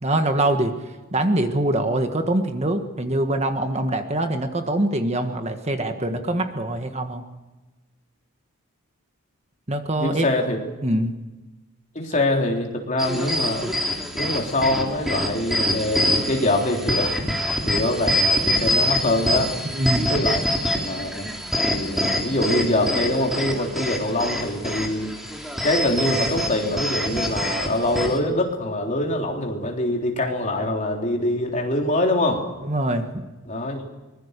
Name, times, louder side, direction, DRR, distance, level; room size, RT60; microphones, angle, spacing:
voice 1, 0.0-0.7 1.1-7.2 9.7-10.2 10.8-11.1 19.7-20.1 32.7-33.2, right 1 dB, 30° right, 6 dB, 1.5 m, -23 dB
voice 2, 10.0-10.6 11.9-13.7 14.1-19.6 20.1-20.5 20.7-21.3 21.7-25.1 25.6-32.4 33.5-33.8, left 1 dB, 35° left, 1 dB, 3.7 m, -24 dB
sound 1, 13.0-28.2, left 1 dB, ahead, 3.0 m, -25 dB
24.0 x 21.5 x 6.8 m, 1.1 s
head